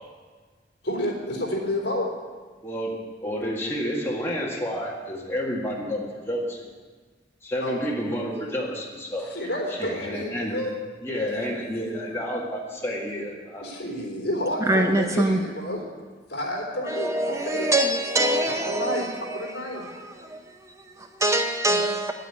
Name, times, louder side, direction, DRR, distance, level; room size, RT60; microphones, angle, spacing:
voice 1, 0.8-2.1 7.6-7.8 9.3-10.7 11.1-11.3 13.6-15.8 16.3-17.7 18.5-19.8, left 1 dB, 60° left, 3.5 m, -30 dB
voice 2, 2.6-2.9 3.2-6.7 7.4-9.3 9.7-10.6 11.0-13.7 14.9-15.0, equal, 15° left, 1.8 m, -30 dB
voice 3, 14.6-15.4 16.8-22.1, right 1 dB, 15° right, 0.6 m, -25 dB
9.4 x 9.3 x 9.3 m
head